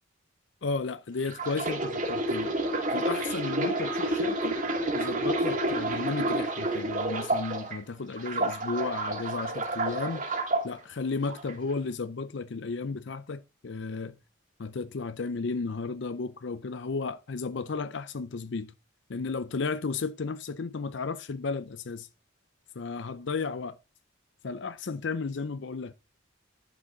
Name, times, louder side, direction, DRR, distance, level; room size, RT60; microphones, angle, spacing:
voice 1, 0.6-2.5 2.9-4.6 4.9-10.2 10.6-14.2 14.6-18.7 19.1-22.1 22.8-23.8 24.4-25.9, left 4 dB, 60° left, 0.5 m, -33 dB
sound 1, 1.2-7.8 8.2-10.6 11.3-11.5, right 2 dB, 40° right, 2.5 m, -29 dB
11.0 x 6.1 x 3.9 m
head